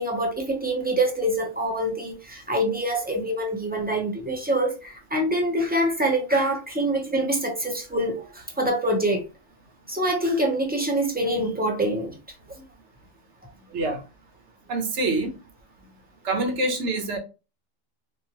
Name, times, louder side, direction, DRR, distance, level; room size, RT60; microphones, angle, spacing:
voice 1, 0.0-9.2 9.9-12.2 12.6-12.7, right 1 dB, 10° right, 0.6 m, -25 dB
voice 2, 14.7-15.4 16.2-17.2, right 2 dB, 65° right, 1.2 m, -25 dB
3.8 x 2.5 x 2.9 m
omnidirectional pair, 1.3 m